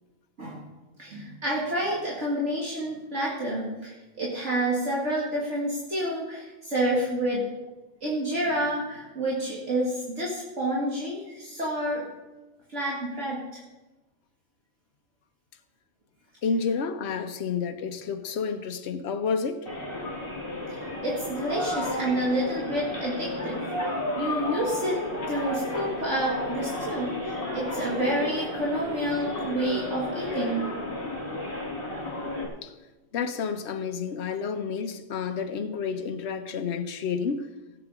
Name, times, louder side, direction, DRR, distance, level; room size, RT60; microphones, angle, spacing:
voice 1, 1.0-7.5 8.0-12.1 12.7-13.6 20.7-23.6 24.2-30.7, right 1 dB, 65° right, 2.4 m, -29 dB
voice 2, 16.4-19.7 32.6-32.7 33.1-37.5, left 5 dB, 60° left, 1.1 m, -30 dB
sound 1, 19.7-32.5, left 1 dB, 45° left, 2.9 m, -32 dB
17.0 x 8.3 x 4.9 m
omnidirectional pair, 1.3 m